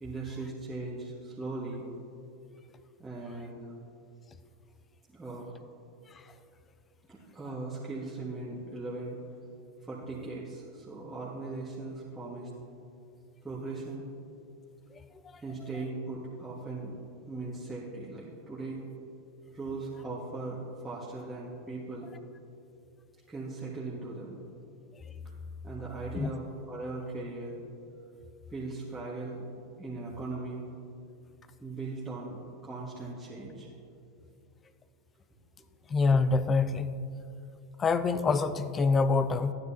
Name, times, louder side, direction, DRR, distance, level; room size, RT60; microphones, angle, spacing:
voice 1, 0.0-1.9 3.0-3.7 5.1-5.5 7.1-9.2 9.8-12.5 13.4-14.0 15.4-17.0 17.3-18.8 19.5-20.6 20.8-22.1 23.3-24.4 25.6-27.6 28.5-29.5 29.8-30.7 31.6-33.7, right 3 dB, 10° right, -8 dB, 1.7 m, -39 dB
voice 2, 35.9-36.9 37.8-39.5, left 4 dB, 25° left, 12 dB, 0.5 m, -25 dB
14.5 x 9.5 x 2.8 m, 2.7 s
figure-of-eight pair, 90°, 0 cm